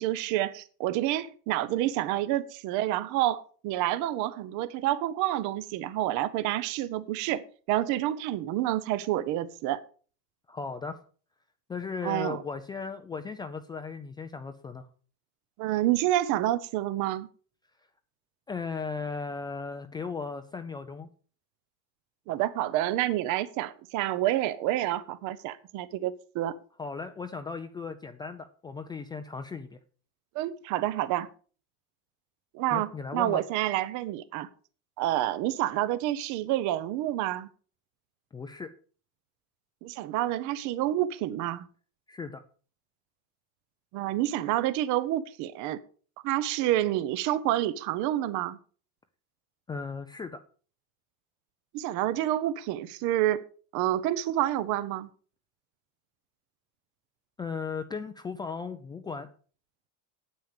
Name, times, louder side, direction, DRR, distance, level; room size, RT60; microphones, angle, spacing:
voice 1, 0.0-9.8 12.0-12.4 15.6-17.3 22.3-26.6 30.3-31.3 32.5-34.5 35.0-37.5 39.8-41.7 43.9-45.8 46.2-48.6 51.7-53.4 53.7-55.1, right 14 dB, 50° right, 0.9 m, -28 dB
voice 2, 10.5-11.0 11.7-14.9 18.5-21.1 26.8-29.8 32.7-33.4 38.3-38.7 42.1-42.4 49.7-50.4 57.4-59.3, left 5 dB, 10° left, 0.4 m, -36 dB
9.4 x 8.8 x 6.6 m
cardioid pair, 175°, 37 cm